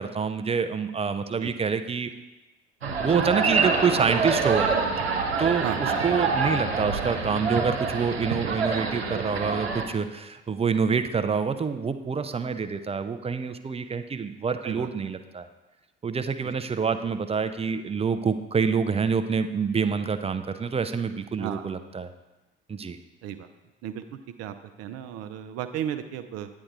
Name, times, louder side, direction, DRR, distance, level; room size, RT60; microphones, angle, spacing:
voice 1, 0.0-2.1 3.0-4.7 5.4-15.5 16.0-22.1 22.7-23.0, right 5 dB, 20° right, 9 dB, 0.7 m, -27 dB
sound 1, 2.8-9.8, right 4 dB, 80° right, 1.1 m, -26 dB
voice 2, 21.4-21.7 23.2-23.5 23.8-24.0 24.4-26.5, right 10 dB, 50° right, 10 dB, 0.8 m, -34 dB
9.9 x 9.5 x 3.7 m, 1.1 s
figure-of-eight pair, 50°, 30 cm